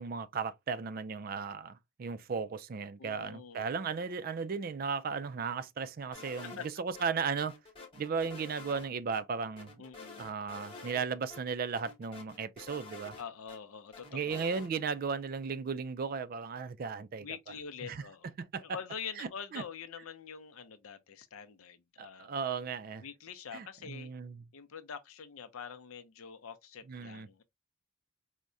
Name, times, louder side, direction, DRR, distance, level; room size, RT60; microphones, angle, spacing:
voice 1, 0.0-7.5 7.9-9.7 10.2-13.2 14.1-17.3 17.8-18.0 18.4-18.6 19.2-19.3 19.5-19.6 22.0-23.0 23.5-24.4 26.9-27.3, right 5 dB, 45° right, 0.3 m, -36 dB
voice 2, 3.0-3.6 6.6-6.7 9.8-10.3 13.2-14.4 17.2-18.3 18.6-22.3 23.0-24.1 24.5-27.4, left 7 dB, 85° left, 0.6 m, -45 dB
sound 1, 6.1-7.0 7.4-8.9 9.1-9.2 9.6-11.0 11.3-11.4 11.7-13.6 13.9-14.7, left 4 dB, 25° left, 0.9 m, -49 dB
4.6 x 2.1 x 2.5 m
head